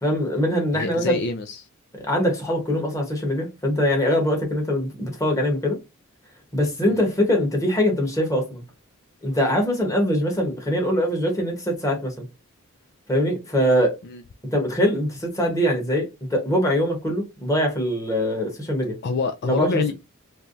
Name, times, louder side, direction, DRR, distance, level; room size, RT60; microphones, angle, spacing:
voice 1, 0.0-1.2 2.0-5.8 6.5-8.6 9.2-12.3 13.1-14.0 14.5-19.0 19.4-19.9, equal, 15° left, 1.2 m, -23 dB
voice 2, 0.7-1.7 6.9-7.0 14.0-14.2 19.0-19.9, left 4 dB, 50° left, 0.4 m, -26 dB
3.4 x 3.0 x 2.6 m
head